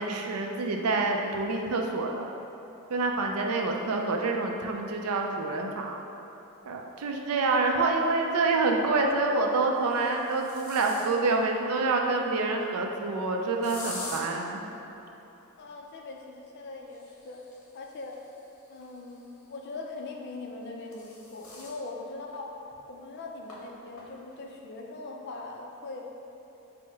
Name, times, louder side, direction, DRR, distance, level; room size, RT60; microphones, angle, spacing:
voice 1, 0.0-2.3 2.9-6.0 6.7-14.6, right 3 dB, 85° right, 2 dB, 0.4 m, -27 dB
voice 2, 3.5-4.1 15.6-17.5 17.7-18.2 18.7-22.5 22.9-26.0, left 3 dB, 50° left, 1 dB, 0.4 m, -41 dB
sound 1, 8.8-9.2 9.8-11.4 13.6-14.2 16.8-19.4 20.5-21.8 22.3-22.4 22.7-22.8 23.5-23.6 24.0-24.4, left 2 dB, 70° left, 0.8 m, -44 dB
4.5 x 2.1 x 4.6 m, 3.0 s
head